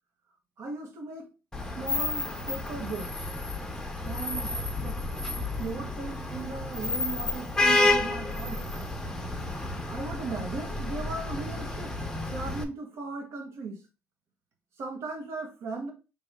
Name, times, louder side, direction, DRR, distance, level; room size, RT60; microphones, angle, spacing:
voice 1, 0.6-1.3 1.8-3.1 4.0-4.5 4.8-5.0 5.6-8.7 9.9-12.0 12.3-13.8 14.8-15.9, right 3 dB, 65° right, 1.5 m, -37 dB
Vehicle horn car horn honking / Traffic noise roadway noise, 1.5-12.6, left 2 dB, 10° left, 0.9 m, -30 dB
3.4 x 2.9 x 4.7 m
cardioid pair, 90°, 5 cm